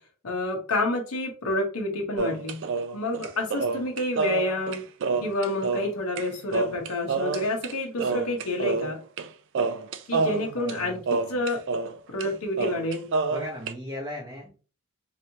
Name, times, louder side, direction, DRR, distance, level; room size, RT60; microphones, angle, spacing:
voice 1, 0.2-2.6 2.9-4.8 5.2-9.0 10.1-11.6 12.1-13.1, left 1 dB, 90° left, 1 dB, 0.8 m, -29 dB
sound 1, 2.2-6.2 6.5-7.7 8.0-9.3 9.5-11.9 12.2-12.3 12.6-13.7, right 4 dB, 60° right, 0.4 m, -28 dB
voice 2, 10.2-11.0 13.3-14.5, left 1 dB, 15° right, -3 dB, 0.6 m, -37 dB
3.2 x 3.0 x 2.7 m, 0.37 s
head